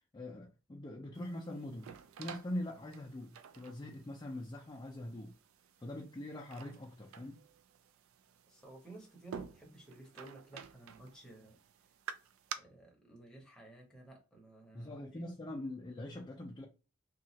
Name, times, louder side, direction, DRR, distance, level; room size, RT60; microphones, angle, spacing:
voice 1, 0.1-1.9 2.2-5.3 5.8-7.4 14.7-16.7, left 1 dB, 20° left, 0.4 m, -43 dB
sound 1, 1.1-12.5, right 8 dB, 80° right, 0.3 m, -51 dB
voice 2, 8.5-11.6 12.6-15.3, right 2 dB, 5° left, 0.8 m, -54 dB
2.9 x 2.3 x 2.7 m
head